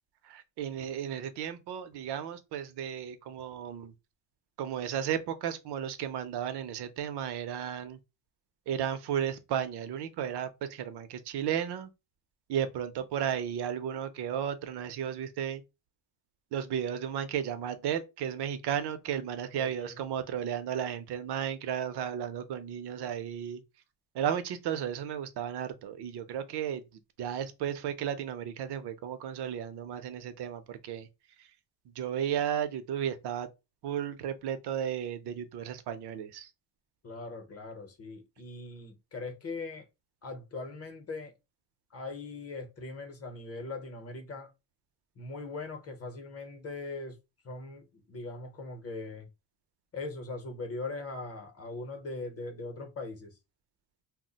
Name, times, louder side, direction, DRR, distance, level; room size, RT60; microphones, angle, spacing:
voice 1, 0.2-3.9 4.6-8.0 8.7-11.9 12.5-15.6 16.5-23.6 24.1-26.8 27.2-31.1 31.4-31.5 32.0-33.5 33.8-36.5, right 9 dB, 75° right, 0.6 m, -34 dB
voice 2, 19.5-20.0 37.0-39.9 40.2-41.3 41.9-44.5 45.2-47.2 47.4-49.3 49.9-53.4, left 3 dB, 35° left, 0.7 m, -40 dB
2.3 x 2.1 x 3.8 m
cardioid pair, 165°, 41 cm